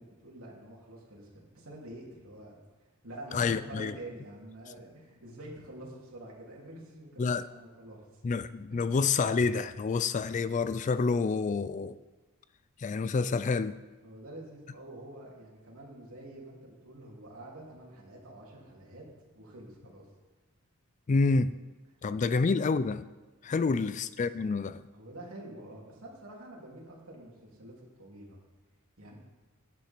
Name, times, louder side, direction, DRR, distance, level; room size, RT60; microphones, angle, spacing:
voice 1, 0.0-2.6 3.0-8.0 8.7-8.8 14.0-19.0 19.3-20.0 22.1-22.2 23.4-23.6 24.9-28.4 29.0-29.2, right 1 dB, 65° right, 3.2 m, -47 dB
voice 2, 3.3-3.9 7.2-7.5 8.2-12.0 12.8-13.8 21.1-21.5 22.0-23.0 23.4-24.8, left 4 dB, 35° left, 0.3 m, -28 dB
11.5 x 10.5 x 4.5 m
head